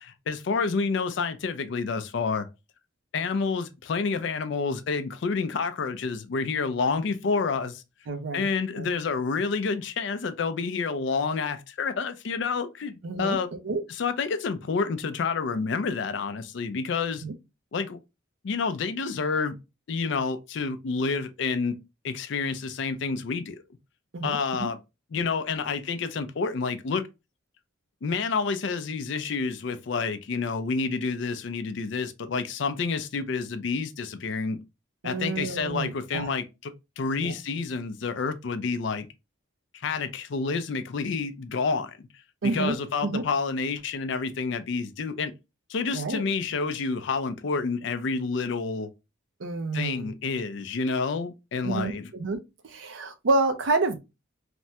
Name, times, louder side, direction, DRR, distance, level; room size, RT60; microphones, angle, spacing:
voice 1, 0.0-2.5 3.1-7.8 8.3-13.5 13.9-17.2 17.7-18.0 18.4-19.6 19.9-21.8 22.0-23.6 24.2-24.8 25.1-27.1 28.0-34.6 35.0-39.1 39.8-42.1 42.4-45.3 45.7-48.9 49.7-52.1, left 4 dB, 60° left, 0.4 m, -29 dB
voice 2, 8.1-8.9 13.0-13.4 13.6-13.8 17.2-17.3 24.1-24.7 35.0-36.3 37.2-37.3 42.4-42.8 43.0-43.2 45.9-46.2 49.4-50.1 51.6-52.4 52.6-54.0, right 3 dB, 65° right, 0.5 m, -29 dB
3.3 x 2.1 x 2.7 m
head